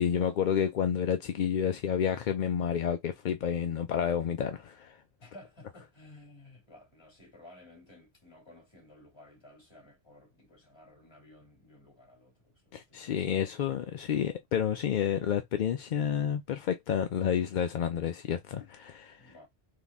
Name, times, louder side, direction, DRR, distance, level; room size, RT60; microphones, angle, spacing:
voice 1, 0.0-5.0 12.7-19.2, left 8 dB, 60° left, 0.5 m, -30 dB
voice 2, 5.2-13.5 19.2-19.5, left 2 dB, 25° left, 2.2 m, -55 dB
4.1 x 2.8 x 3.5 m
omnidirectional pair, 1.2 m